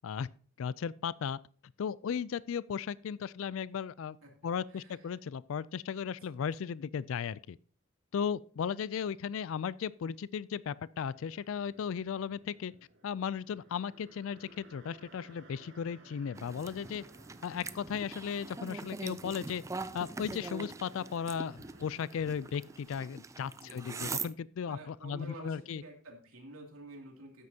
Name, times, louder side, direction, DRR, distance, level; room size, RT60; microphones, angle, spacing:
voice 1, 0.6-1.4 1.8-4.2 4.4-7.6 8.1-12.7 13.0-17.0 17.4-19.6 19.9-25.8, left 7 dB, 65° left, 0.3 m, -36 dB
voice 2, 4.7-5.2 6.3-6.4 23.6-24.1 24.7-27.5, right 1 dB, 80° right, 2.6 m, -50 dB
sound 1, 10.9-22.8, right 2 dB, 55° right, 2.1 m, -60 dB
sound 2, 16.4-24.3, right 4 dB, 15° right, 0.3 m, -43 dB
13.0 x 9.5 x 2.8 m
head